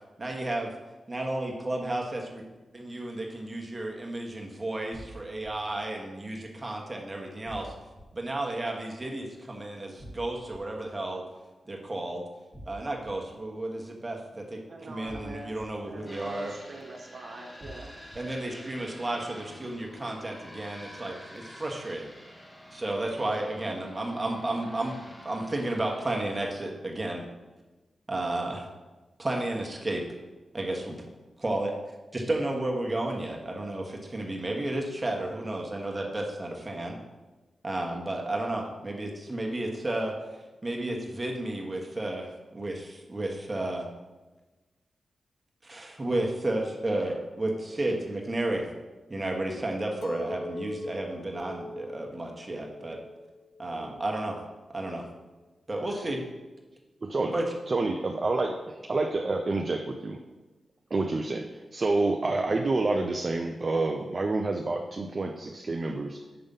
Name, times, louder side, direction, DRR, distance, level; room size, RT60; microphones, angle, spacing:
voice 1, 0.2-0.7 1.1-2.4 2.7-7.7 8.1-11.2 11.7-12.2 12.7-14.6 14.9-16.5 18.1-22.1 22.7-25.0 25.2-27.2 28.1-28.7 29.2-30.0 30.5-30.9 31.4-31.7 32.1-36.9 37.6-40.1 40.6-43.9 45.6-48.7 49.1-53.0 53.6-54.4 54.7-55.1 55.7-56.2 57.3-57.4, right 1 dB, 30° right, 0 dB, 1.4 m, -32 dB
sound 1, 4.9-5.5 7.5-8.0 10.0-10.6 12.5-13.1 15.1-15.6 17.6-18.2, right 1 dB, ahead, 1.4 m, -45 dB
voice 2, 14.7-15.5 15.8-17.9, right 2 dB, 70° right, 0 dB, 1.2 m, -43 dB
sound 2, 16.1-26.2, equal, 15° left, 1.4 m, -48 dB
Chink clink, 50.0-54.3 54.7-55.3, left 1 dB, 70° left, 0.5 m, -42 dB
voice 3, 57.0-57.3 57.7-60.2 60.9-61.5 61.7-66.2, right 3 dB, 45° right, 3 dB, 0.5 m, -28 dB
6.8 x 3.5 x 5.4 m, 1.2 s
cardioid pair, 50°, 0 cm